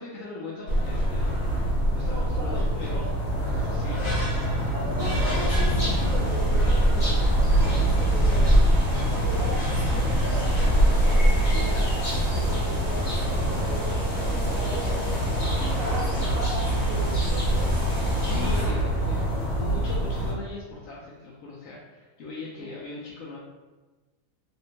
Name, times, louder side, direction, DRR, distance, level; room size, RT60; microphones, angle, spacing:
voice 1, 0.0-3.0 3.6-4.1 18.1-23.4, left 3 dB, 75° left, -5 dB, 1.0 m, -39 dB
sound 1, 0.7-20.3, equal, 55° left, 1.2 m, -27 dB
voice 2, 2.0-3.2 4.7-8.8 9.0-15.1 15.7-17.9 18.3-18.8 22.6-22.7, right 1 dB, 75° right, -4 dB, 1.0 m, -38 dB
sound 2, 5.0-18.6, right 1 dB, 35° left, 1.0 m, -25 dB
3.4 x 2.1 x 2.8 m, 1.2 s
omnidirectional pair, 1.4 m